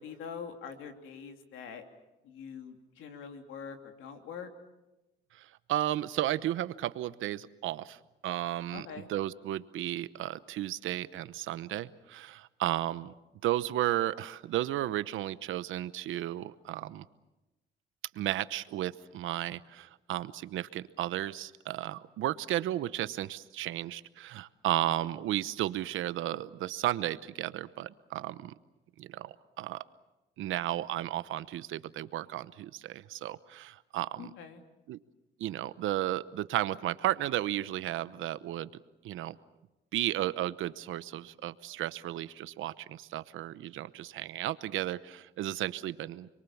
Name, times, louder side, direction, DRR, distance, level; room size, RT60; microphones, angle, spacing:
voice 1, 0.0-1.8 2.2-4.5 8.7-9.1 24.8-24.9 34.2-34.6, left 6 dB, 90° left, 6 dB, 2.9 m, -44 dB
voice 2, 5.4-8.0 8.2-13.1 13.4-17.0 18.1-28.5 29.0-29.8 30.4-34.3 34.9-35.0 35.4-38.7 39.0-39.4 39.9-46.3, right 13 dB, 85° right, 15 dB, 1.0 m, -34 dB
29.5 x 23.0 x 7.2 m, 1.0 s
cardioid pair, 90°, 20 cm